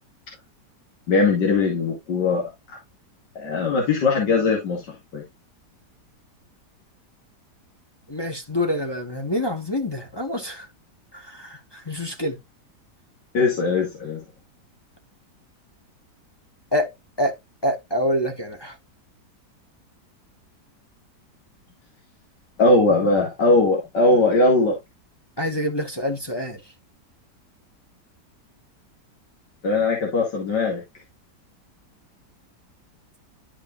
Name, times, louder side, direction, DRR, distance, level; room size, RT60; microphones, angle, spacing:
voice 1, 1.1-2.5 3.4-5.2 13.3-14.2 22.6-24.8 29.6-30.8, left 3 dB, 85° left, 2.8 m, -20 dB
voice 2, 8.1-10.7 11.1-12.4 16.7-16.9 17.2-17.4 17.6-18.7 25.4-26.6, left 1 dB, 15° left, 1.1 m, -26 dB
12.0 x 5.1 x 2.4 m
omnidirectional pair, 1.8 m